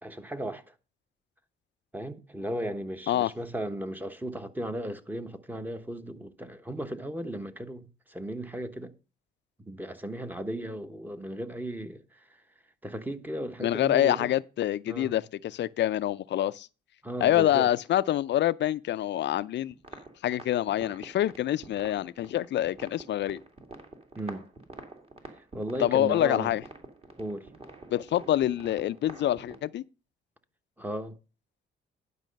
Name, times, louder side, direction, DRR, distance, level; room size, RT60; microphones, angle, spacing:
voice 1, 0.0-0.7 1.9-8.9 9.6-12.4 12.8-14.3 14.9-15.2 17.0-17.7 24.1-24.5 25.5-26.5 27.2-27.5 30.8-31.2, right 1 dB, 10° right, 1.1 m, -36 dB
voice 2, 13.6-16.7 17.2-19.7 20.2-23.4 25.8-26.6 27.9-29.8, left 12 dB, 65° left, 0.5 m, -26 dB
sound 1, 19.7-29.6, right 2 dB, 30° right, 2.4 m, -48 dB
11.0 x 5.5 x 5.3 m
cardioid pair, 90°, 20 cm